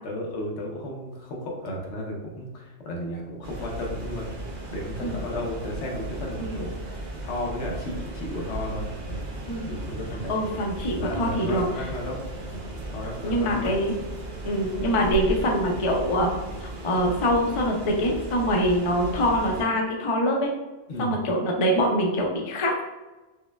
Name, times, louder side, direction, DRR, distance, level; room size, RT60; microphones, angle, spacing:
voice 1, 0.0-4.2 4.7-9.2 9.6-10.4 10.9-12.2 12.5-12.6 12.9-13.7 20.9-21.2, left 1 dB, 70° left, -1 dB, 1.0 m, -34 dB
sound 1, 3.4-19.6, right 1 dB, 50° right, 0.8 m, -36 dB
voice 2, 10.3-11.8 13.2-13.9 14.4-16.3 16.8-20.5 21.0-22.8, equal, 55° left, 0 dB, 0.3 m, -24 dB
5.4 x 2.1 x 2.2 m, 1.1 s
omnidirectional pair, 1.2 m